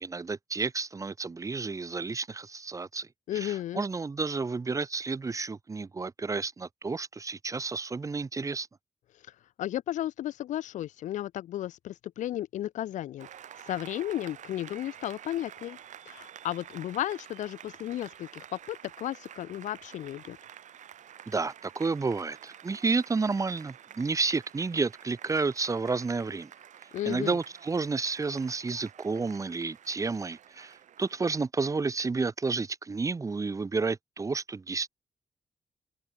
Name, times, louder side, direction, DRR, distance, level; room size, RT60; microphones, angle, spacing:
voice 1, 0.0-3.1 3.3-8.7 21.3-26.5 27.0-34.9, right 4 dB, 25° right, 0.7 m, -31 dB
voice 2, 3.3-3.8 9.6-13.3 13.7-15.8 16.1-20.4 26.9-27.4, left 13 dB, 90° left, 0.4 m, -34 dB
Applause, 13.2-31.5, right 9 dB, 80° right, 1.7 m, -50 dB
cardioid pair, 105°, 12 cm